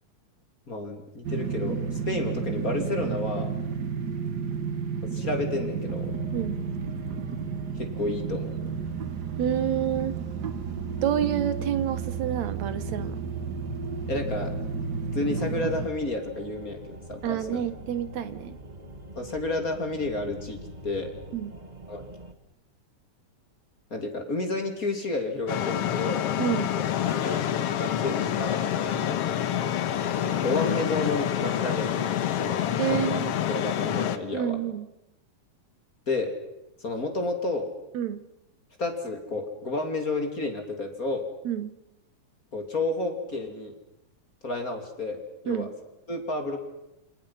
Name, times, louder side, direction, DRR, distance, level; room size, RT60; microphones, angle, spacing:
voice 1, 0.7-3.5 5.0-6.1 7.7-8.6 14.1-14.5 15.1-17.6 19.1-20.6 20.8-21.1 21.9-22.0 23.9-26.3 27.0-29.0 30.1-32.6 32.9-33.2 33.5-34.6 36.1-36.3 36.8-37.7 38.8-41.3 42.5-43.7 44.4-45.7 46.1-46.6, left 2 dB, 30° left, 5 dB, 3.1 m, -31 dB
sound 1, 1.2-15.9, right 6 dB, 50° right, 1.2 m, -32 dB
sound 2, 5.9-22.3, equal, 30° right, 0.8 m, -43 dB
voice 2, 9.4-10.2 11.0-13.2 17.2-18.6 21.3-21.6 26.4-26.8 32.8-33.3 34.3-34.9 37.9-38.2 41.5-41.7 45.5-45.7, right 9 dB, 65° right, 13 dB, 2.5 m, -28 dB
sound 3, 25.5-34.2, left 10 dB, 60° left, 1.9 m, -27 dB
27.5 x 27.5 x 5.7 m, 0.85 s
omnidirectional pair, 3.5 m